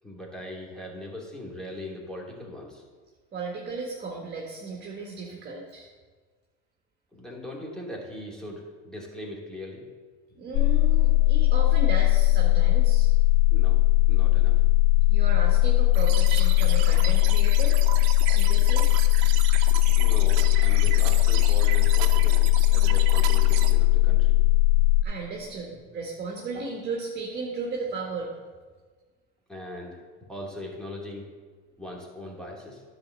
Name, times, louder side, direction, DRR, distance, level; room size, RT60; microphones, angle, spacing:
voice 1, 0.0-2.8 7.1-9.8 13.5-13.8 14.1-14.6 19.9-24.4 29.5-31.3 31.8-32.8, left 1 dB, ahead, -2 dB, 2.6 m, -40 dB
voice 2, 3.3-5.9 10.3-13.1 15.1-17.8 18.2-18.9 25.0-28.4, right 3 dB, 35° right, -1 dB, 1.8 m, -35 dB
sound 1, 10.5-25.0, left 16 dB, 65° left, 0.5 m, -19 dB
sound 2, 15.9-23.7, right 11 dB, 75° right, 0.9 m, -35 dB
10.5 x 4.3 x 7.6 m, 1.4 s
supercardioid pair, 100°, 31 cm